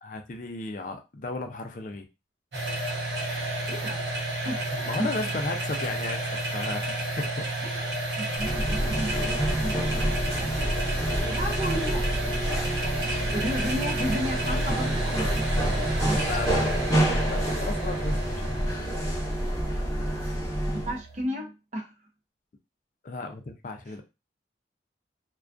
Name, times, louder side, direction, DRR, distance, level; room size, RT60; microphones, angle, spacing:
voice 1, 0.0-2.0 4.8-6.2 6.5-7.5 16.2-18.7 20.7-20.8 23.0-24.0, left 2 dB, 45° left, 5 dB, 0.4 m, -35 dB
sound 1, 2.5-21.2, right 1 dB, 80° right, 0.8 m, -31 dB
voice 2, 3.7-4.0 4.4-4.6 5.0-5.1 7.6-7.9 8.2-10.7 11.3-12.2 13.3-16.4 20.7-21.9, equal, 40° right, 2 dB, 0.5 m, -34 dB
sound 2, 8.4-21.0, right 1 dB, 15° left, 0.7 m, -28 dB
2.4 x 2.2 x 2.4 m, 0.26 s
head